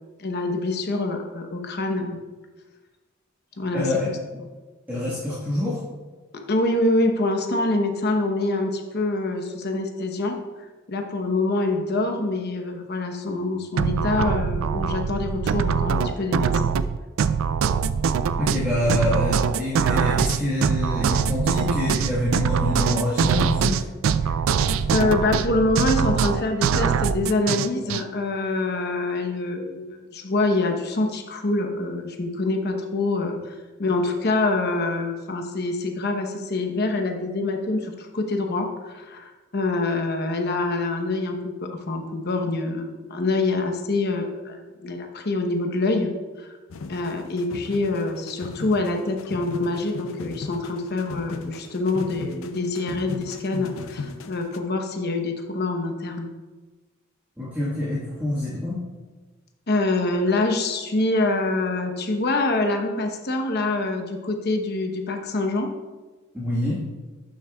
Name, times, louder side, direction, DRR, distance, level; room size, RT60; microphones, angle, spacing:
voice 1, 0.2-2.2 3.6-4.2 6.3-10.4 10.9-16.7 24.9-46.1 46.4-46.5 46.9-56.3 59.7-65.7, left 2 dB, 55° left, 4 dB, 0.9 m, -25 dB
voice 2, 3.7-4.1 4.9-5.8 18.4-23.8 57.4-58.8 66.3-66.8, left 1 dB, 10° right, -10 dB, 1.5 m, -26 dB
sound 1, 13.8-28.0, right 6 dB, 80° right, 0.3 m, -23 dB
sound 2, 46.7-54.6, left 4 dB, 85° left, 0.5 m, -37 dB
12.0 x 6.6 x 2.3 m, 1.3 s
head